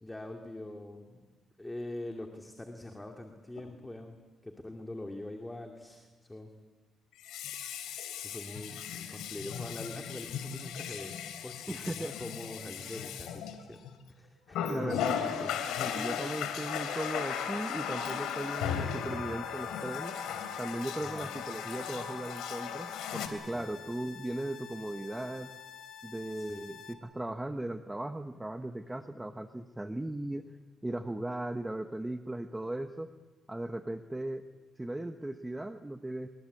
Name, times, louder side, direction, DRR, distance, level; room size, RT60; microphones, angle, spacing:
voice 1, 0.0-1.3 1.6-4.2 4.4-6.5 7.8-11.2 11.4-15.5 21.0-21.3 23.5-23.8 26.4-26.7 29.1-29.2, left 1 dB, 10° left, 3 dB, 2.5 m, -44 dB
Water tap faucet, 3.6-3.7 7.1-14.0 14.5-23.3, left 8 dB, 90° left, 3.3 m, -36 dB
voice 2, 11.7-12.1 14.7-15.5 15.8-20.1 20.6-25.5 26.0-30.5 30.8-33.1 33.5-34.4 34.8-36.3, right 1 dB, 10° right, 8 dB, 1.1 m, -37 dB
sound 1, 17.9-26.9, left 8 dB, 65° left, 2.7 m, -49 dB
27.5 x 21.0 x 8.5 m, 1.3 s
cardioid pair, 90°, 0 cm